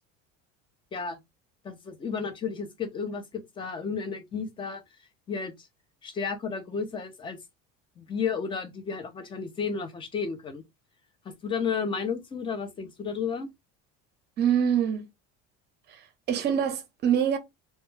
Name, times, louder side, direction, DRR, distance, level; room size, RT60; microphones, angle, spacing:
voice 1, 1.6-4.8 5.3-5.7 6.0-7.4 8.0-10.6 11.3-13.5, left 6 dB, 15° left, 0.4 m, -32 dB
voice 2, 14.4-15.1 15.9-17.4, right 8 dB, 35° right, 0.6 m, -25 dB
2.2 x 2.1 x 3.0 m
cardioid pair, 155°, 30 cm